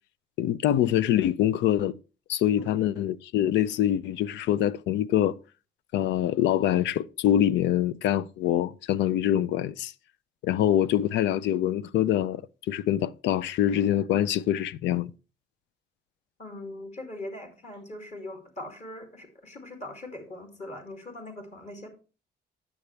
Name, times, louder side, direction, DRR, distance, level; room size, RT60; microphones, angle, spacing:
voice 1, 0.4-2.0 2.3-5.4 5.9-9.9 10.4-12.4 12.7-15.1, left 11 dB, 90° left, 0.4 m, -24 dB
voice 2, 16.4-21.9, left 1 dB, 40° left, 2.4 m, -41 dB
9.6 x 7.0 x 3.2 m
cardioid pair, 85°, 18 cm